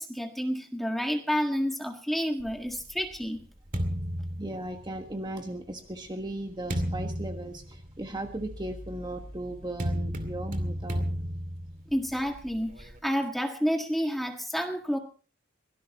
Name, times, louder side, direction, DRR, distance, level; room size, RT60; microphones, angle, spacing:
voice 1, 0.0-3.4 11.9-15.0, equal, ahead, 3 dB, 1.6 m, -30 dB
sound 1, 2.4-5.2 5.9-13.0, equal, 40° right, 2.3 m, -34 dB
voice 2, 4.4-11.0, right 1 dB, 20° right, 5 dB, 1.4 m, -37 dB
24.0 x 18.0 x 3.0 m, 0.38 s
head